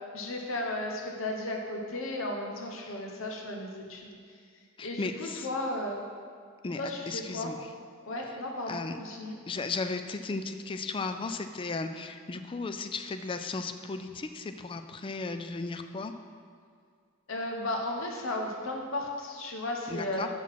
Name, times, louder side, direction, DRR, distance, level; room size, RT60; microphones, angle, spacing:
voice 1, 0.1-4.1 4.8-6.0 6.8-7.5 8.0-9.4 17.3-20.3, left 1 dB, 80° left, 1 dB, 1.0 m, -34 dB
voice 2, 4.8-5.5 6.6-7.7 8.7-9.0 9.5-16.1 19.9-20.3, left 3 dB, 25° left, 8 dB, 0.3 m, -35 dB
6.1 x 5.9 x 5.7 m, 2.1 s
head